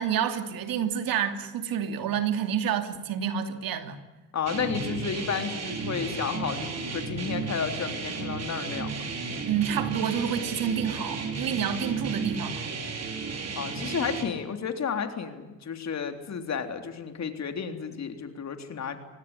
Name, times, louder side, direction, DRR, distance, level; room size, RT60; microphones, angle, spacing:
voice 1, 0.0-4.0 9.5-12.7, right 8 dB, 70° right, 8 dB, 2.9 m, -29 dB
voice 2, 4.3-9.1 13.6-19.0, left 6 dB, 50° left, 7 dB, 3.6 m, -32 dB
sound 1, 4.5-14.2, right 4 dB, 45° right, 5.1 m, -33 dB
24.5 x 19.0 x 9.8 m, 1.1 s
cardioid pair, 90°, 36 cm